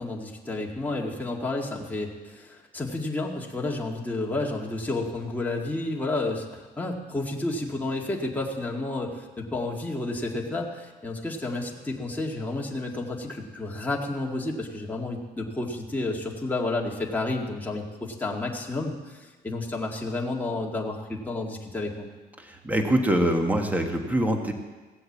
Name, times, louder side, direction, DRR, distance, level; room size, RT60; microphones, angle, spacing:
voice 1, 0.0-22.1, left 2 dB, 10° left, -2 dB, 2.0 m, -31 dB
voice 2, 22.4-24.5, right 1 dB, 10° right, 4 dB, 1.6 m, -24 dB
16.5 x 7.8 x 7.4 m, 1.3 s
cardioid pair, 110°, 17 cm